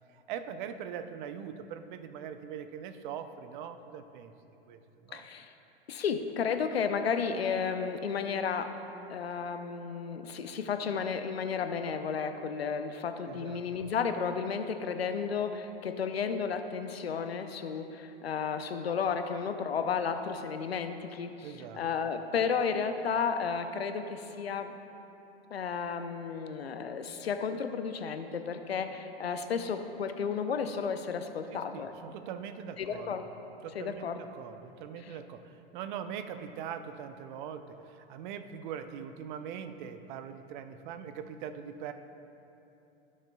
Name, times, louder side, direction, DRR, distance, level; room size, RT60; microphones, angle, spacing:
voice 1, 0.1-4.3 4.7-5.3 13.3-13.9 21.4-21.8 31.5-33.3 33.6-41.9, right 8 dB, 55° right, 9 dB, 0.6 m, -42 dB
voice 2, 5.1-5.5 5.9-8.7 9.1-21.3 21.8-24.7 25.5-31.9 32.8-33.2 33.7-34.2, left 6 dB, 90° left, 8 dB, 0.7 m, -33 dB
17.0 x 6.5 x 2.3 m, 2.9 s
hypercardioid pair, 100°, 30 cm